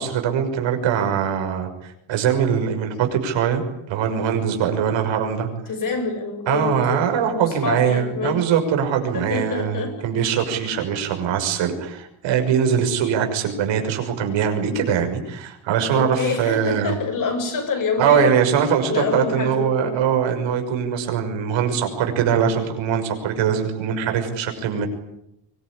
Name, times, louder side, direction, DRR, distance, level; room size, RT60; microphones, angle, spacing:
voice 1, 0.0-3.6 3.9-5.5 6.5-16.9 18.0-24.9, right 7 dB, 75° right, 5 dB, 6.3 m, -22 dB
voice 2, 5.7-8.5 9.1-10.0 15.9-18.4 18.9-20.0, left 4 dB, 45° left, 5 dB, 7.5 m, -26 dB
24.5 x 22.0 x 10.0 m, 0.81 s
cardioid pair, 150°, 45 cm